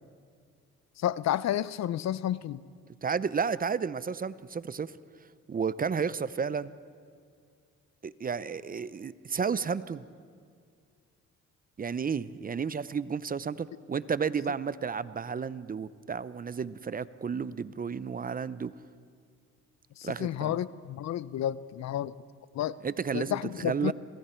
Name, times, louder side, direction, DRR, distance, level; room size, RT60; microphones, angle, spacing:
voice 1, 1.0-2.6 20.0-22.1 22.5-22.8 23.1-23.9, left 11 dB, 65° left, 18 dB, 0.6 m, -31 dB
voice 2, 3.0-4.9 5.5-6.7 8.0-10.0 11.8-18.7 20.0-20.6 22.8-23.9, right 6 dB, 30° right, 17 dB, 0.6 m, -32 dB
27.0 x 21.5 x 4.5 m, 2.2 s
cardioid pair, 90°, 30 cm